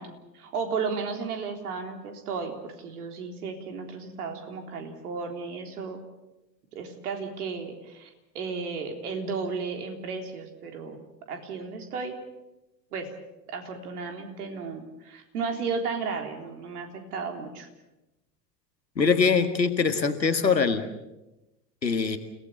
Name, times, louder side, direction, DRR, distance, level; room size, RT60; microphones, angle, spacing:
voice 1, 0.0-6.0 6.7-8.1 8.3-12.2 12.9-13.1 13.5-17.7, right 5 dB, 65° right, 4 dB, 3.8 m, -34 dB
voice 2, 19.0-20.8 21.8-22.2, left 5 dB, 85° left, 8 dB, 1.9 m, -23 dB
29.5 x 17.5 x 7.1 m, 0.99 s
figure-of-eight pair, 80°, 50 cm